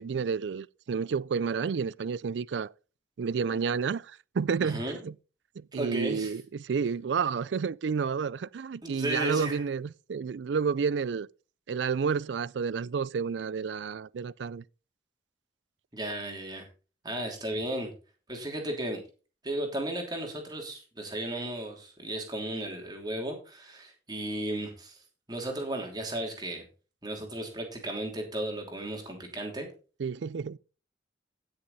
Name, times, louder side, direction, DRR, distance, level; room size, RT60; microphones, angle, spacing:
voice 1, 0.0-2.7 3.2-5.1 5.6-11.3 11.7-14.6 30.0-30.6, right 6 dB, 85° right, 0.4 m, -30 dB
voice 2, 4.6-5.0 5.7-6.3 8.8-9.6 15.9-16.7 17.0-17.9 18.3-19.0 19.4-25.0 25.3-26.6 27.0-29.7, right 1 dB, 25° right, 3.0 m, -34 dB
16.0 x 6.5 x 4.1 m
head